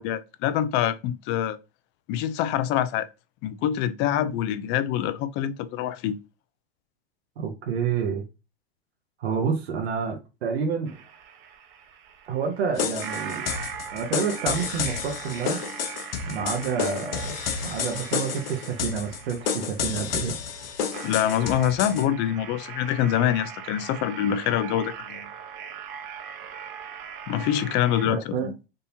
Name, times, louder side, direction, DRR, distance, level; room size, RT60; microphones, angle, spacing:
voice 1, 0.0-1.6 2.1-3.1 3.4-6.2 21.0-25.3 27.3-28.5, left 10 dB, 35° left, 0.4 m, -25 dB
voice 2, 7.4-8.2 9.2-11.0 12.3-13.5 13.9-15.6 16.2-17.4 17.6-20.4 28.1-28.5, right 6 dB, 80° right, 0.8 m, -29 dB
sound 1, 10.9-28.1, right 7 dB, 40° right, 0.8 m, -40 dB
sound 2, 12.8-22.0, left 7 dB, 65° left, 0.8 m, -30 dB
3.6 x 2.7 x 2.7 m
hypercardioid pair, 105°, 31 cm